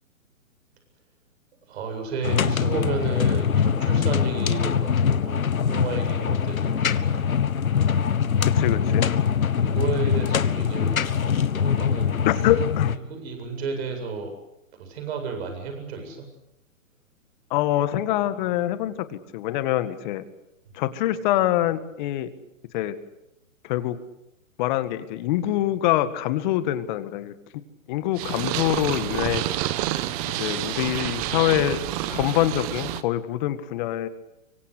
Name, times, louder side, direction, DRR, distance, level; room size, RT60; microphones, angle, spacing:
voice 1, 1.7-7.3 9.5-12.1 13.1-14.3 14.8-16.2, right 4 dB, 50° right, 6 dB, 8.0 m, -32 dB
sound 1, 2.2-13.0, left 7 dB, 90° left, 1.5 m, -23 dB
voice 2, 8.5-9.2 12.3-12.9 17.5-20.2 20.7-22.3 22.7-22.9 23.6-24.0 24.6-27.3 27.9-29.4 30.4-31.8 32.1-34.1, left 13 dB, 35° left, 12 dB, 1.9 m, -25 dB
Purr, 28.2-33.0, right 14 dB, 25° right, 1.2 m, -28 dB
26.0 x 24.5 x 8.4 m, 0.83 s
hypercardioid pair, 145°, 41 cm